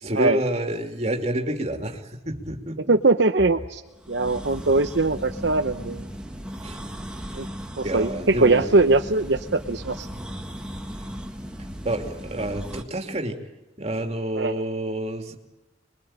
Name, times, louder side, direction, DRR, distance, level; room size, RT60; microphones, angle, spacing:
voice 1, 0.0-2.0 2.3-2.8 6.6-6.8 7.8-8.6 11.8-13.4 13.8-15.4, right 1 dB, 35° right, 3 dB, 2.6 m, -28 dB
voice 2, 2.9-3.8 4.1-6.0 7.3-7.5 7.8-10.1 14.4-14.6, right 3 dB, 60° right, 6 dB, 0.9 m, -21 dB
sound 1, 4.0-12.8, equal, 5° right, 1.8 m, -36 dB
26.5 x 22.0 x 8.8 m, 1.1 s
head